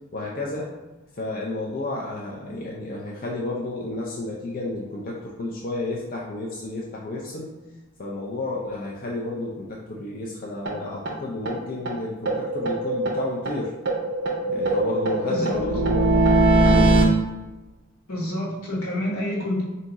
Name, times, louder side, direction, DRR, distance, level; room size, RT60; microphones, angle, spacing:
voice 1, 0.1-0.7 1.2-7.5 8.0-13.7 14.5-17.0, left 2 dB, 40° left, -3 dB, 0.5 m, -31 dB
sound 1, 10.7-10.8 11.1-11.2 11.5-11.6 11.9-12.0 12.3-13.6 13.9-17.0, right 2 dB, 50° right, 0.6 m, -21 dB
voice 2, 15.2-15.8 18.1-19.6, left 1 dB, 80° left, -4 dB, 1.4 m, -28 dB
3.5 x 2.8 x 4.0 m, 1.1 s
head